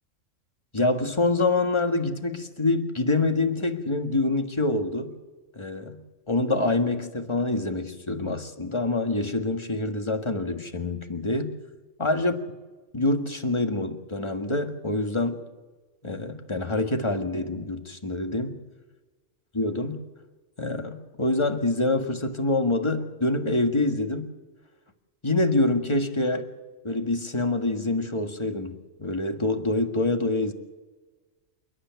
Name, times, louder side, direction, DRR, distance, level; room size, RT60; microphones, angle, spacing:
voice 1, 0.7-5.1 5.5-6.0 6.3-11.5 12.0-12.3 12.9-15.4 16.0-18.6 19.5-20.0 20.6-24.3 25.2-26.5 26.8-30.5, left 2 dB, 20° left, 5 dB, 1.7 m, -26 dB
29.0 x 9.9 x 9.3 m, 1.3 s
omnidirectional pair, 1.3 m